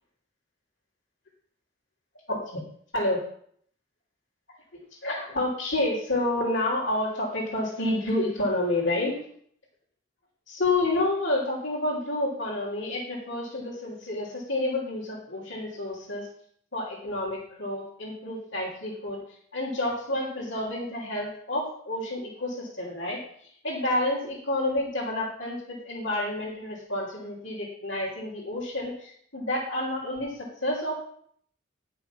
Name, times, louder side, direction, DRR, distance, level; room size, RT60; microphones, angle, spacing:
voice 1, 2.3-2.6 2.9-3.2 4.7-9.2 10.5-16.3 16.7-19.2 19.5-23.2 23.6-31.0, left 1 dB, 65° left, -9 dB, 3.1 m, -29 dB
11.5 x 6.2 x 6.0 m, 0.64 s
head